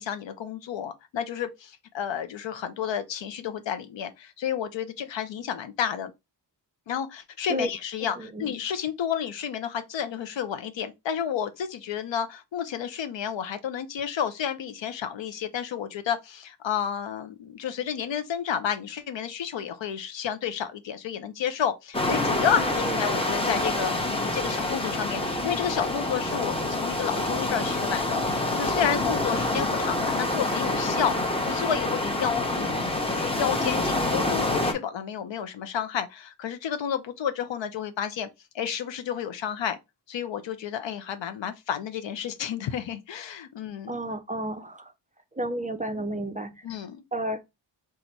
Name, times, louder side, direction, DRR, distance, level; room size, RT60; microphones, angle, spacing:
voice 1, 0.0-6.1 6.9-38.3 38.5-39.8 40.1-44.0 46.6-47.0, left 8 dB, 80° left, 0.7 m, -31 dB
voice 2, 8.0-8.5 22.6-23.0 43.9-44.9 45.3-46.5 47.1-47.4, right 1 dB, 20° right, 0.4 m, -32 dB
sound 1, 21.9-34.7, left 2 dB, 15° left, 0.8 m, -27 dB
4.0 x 2.4 x 4.4 m
wide cardioid pair, 135°, 44 cm